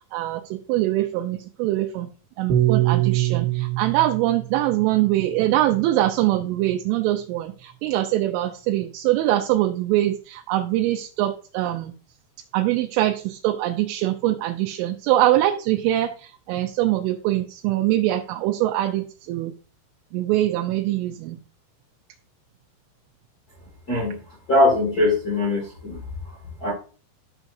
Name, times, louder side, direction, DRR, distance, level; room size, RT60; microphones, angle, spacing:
voice 1, 0.1-0.4 0.7-2.1 2.4-11.9 12.5-19.5 20.1-21.4, right 14 dB, 85° right, 3 dB, 3.1 m, -23 dB
Piano, 2.5-6.9, right 14 dB, 65° right, 2.7 m, -25 dB
voice 2, 24.5-26.0 26.6-26.7, left 2 dB, 50° left, -4 dB, 1.1 m, -21 dB
13.5 x 6.0 x 2.7 m, 0.39 s
omnidirectional pair, 5.7 m